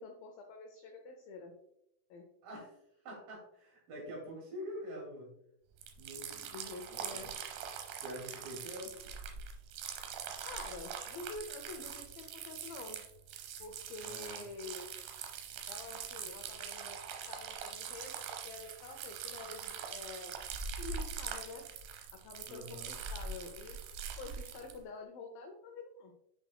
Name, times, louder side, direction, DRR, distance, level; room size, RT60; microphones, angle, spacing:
voice 1, 0.0-1.6 2.1-2.3 6.5-7.4 10.4-13.1 13.6-14.9 15.7-17.0 17.3-20.4 20.8-21.7 22.1-23.8 24.2-26.2, left 4 dB, 85° left, 4 dB, 2.1 m, -48 dB
voice 2, 2.4-2.8 3.0-5.3 6.0-6.6 6.9-7.3 8.0-9.1 14.0-14.5 22.4-22.9, equal, 60° right, -2 dB, 3.7 m, -46 dB
sound 1, 5.8-24.8, right 7 dB, 75° right, 2.2 m, -43 dB
7.8 x 6.1 x 2.2 m, 0.78 s
omnidirectional pair, 5.0 m